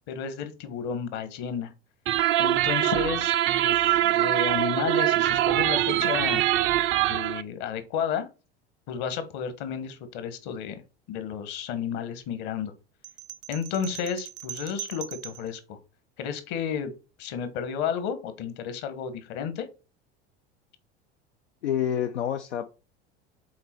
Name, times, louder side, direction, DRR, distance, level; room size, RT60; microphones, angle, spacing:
voice 1, 0.1-1.7 2.4-3.4 3.6-6.4 7.1-8.3 8.9-10.8 11.1-12.7 13.5-15.8 16.2-19.7, left 7 dB, 55° left, 1.4 m, -32 dB
sound 1, 2.1-7.4, right 14 dB, 35° right, 0.5 m, -23 dB
sound 2, 13.0-15.5, right 12 dB, 70° right, 0.7 m, -40 dB
voice 2, 21.6-22.7, left 9 dB, 75° left, 0.6 m, -27 dB
6.6 x 4.1 x 4.4 m
figure-of-eight pair, 75°, 34 cm